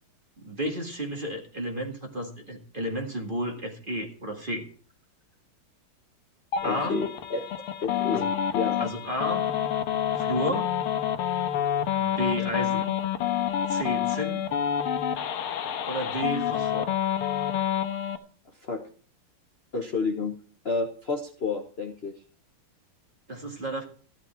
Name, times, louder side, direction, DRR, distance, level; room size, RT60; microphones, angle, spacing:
voice 1, 0.4-4.7 6.6-7.0 8.1-8.2 8.8-9.5 10.1-10.7 11.9-12.9 13.7-14.5 15.9-16.9 23.3-23.8, equal, 25° right, 2 dB, 1.8 m, -32 dB
sound 1, 6.5-18.2, left 10 dB, 75° left, 1.8 m, -28 dB
voice 2, 6.6-7.5 7.8-8.3 8.5-8.8 18.6-18.8 19.7-20.3 20.6-22.1, left 4 dB, 35° left, 3 dB, 1.1 m, -30 dB
14.0 x 10.5 x 4.4 m, 0.42 s
omnidirectional pair, 2.4 m